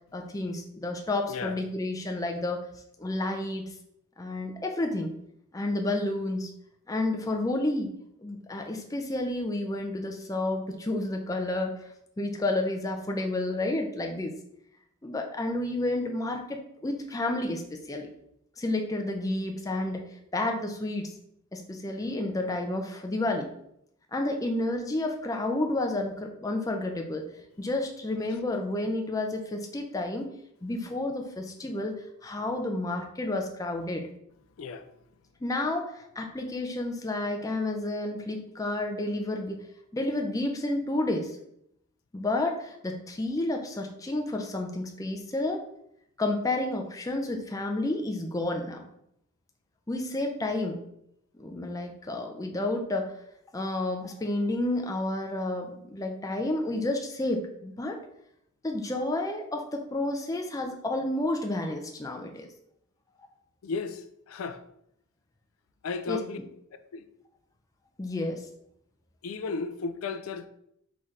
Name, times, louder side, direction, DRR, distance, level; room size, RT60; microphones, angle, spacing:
voice 1, 0.1-2.6 3.0-3.7 4.2-5.1 5.5-6.5 6.9-7.9 8.2-11.8 12.2-14.3 15.0-17.6 17.9-18.1 18.6-20.0 20.3-21.1 21.5-23.5 24.1-27.3 27.6-30.3 30.6-31.9 32.2-34.0 35.4-39.6 39.9-41.4 42.1-45.6 46.2-48.9 49.9-50.8 51.3-53.1 53.5-58.0 58.6-62.5 66.1-66.2 68.0-68.4, left 2 dB, 15° left, 0.4 m, -30 dB
voice 2, 63.6-64.6 65.8-66.4 66.9-67.1 69.2-70.5, left 4 dB, 80° left, 0.4 m, -34 dB
4.0 x 3.2 x 3.7 m
head